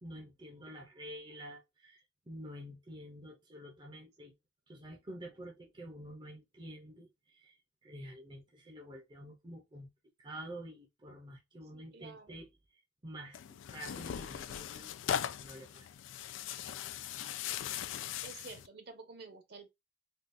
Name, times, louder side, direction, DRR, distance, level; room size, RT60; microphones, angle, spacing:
voice 1, 0.0-4.3 4.7-7.5 7.8-9.9 10.2-12.5 13.0-14.9 15.4-15.9, equal, 25° right, 0.6 m, -48 dB
voice 2, 11.7-12.4 17.4-19.7, right 4 dB, 60° right, 0.8 m, -52 dB
Tearing, 13.3-18.7, left 9 dB, 90° left, 0.3 m, -39 dB
3.6 x 2.3 x 2.5 m
head